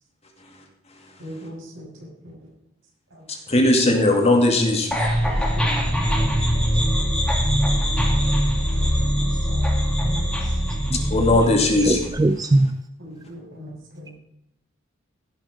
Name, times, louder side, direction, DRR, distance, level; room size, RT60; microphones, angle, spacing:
voice 1, 1.2-2.5 3.1-3.2 5.2-7.4 8.7-8.9 9.1-9.6 10.0-11.0 13.2-14.1, equal, 70° right, -2 dB, 6.2 m, -41 dB
voice 2, 3.5-5.0 11.1-12.1, left 2 dB, 35° left, 2 dB, 2.4 m, -18 dB
sound 1, 4.9-12.1, equal, 5° left, 2.5 m, -22 dB
voice 3, 11.8-12.8, right 2 dB, 20° right, 11 dB, 0.3 m, -21 dB
16.5 x 7.1 x 5.1 m, 0.78 s
head